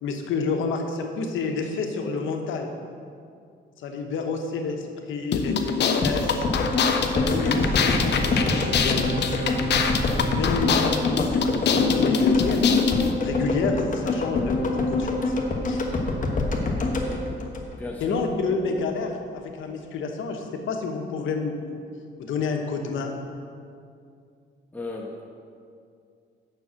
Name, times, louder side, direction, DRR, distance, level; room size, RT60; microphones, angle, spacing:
voice 1, 0.0-2.7 3.8-6.5 7.0-9.3 10.3-12.9 13.2-15.3 15.7-15.8 18.0-21.8 22.2-23.1, left 4 dB, 80° left, 4 dB, 1.1 m, -29 dB
Remix Clap FX, 5.3-13.1, left 6 dB, 60° left, 0.8 m, -24 dB
sound 1, 6.0-18.2 18.5-18.6, left 2 dB, 40° left, 1.3 m, -26 dB
Bowed string instrument, 7.4-11.1 11.4-11.5, equal, 85° right, 2.2 m, -35 dB
voice 2, 17.7-18.2 24.7-25.2, left 2 dB, 10° left, -2 dB, 1.0 m, -35 dB
6.9 x 6.1 x 7.5 m, 2.4 s
cardioid pair, 90°, 20 cm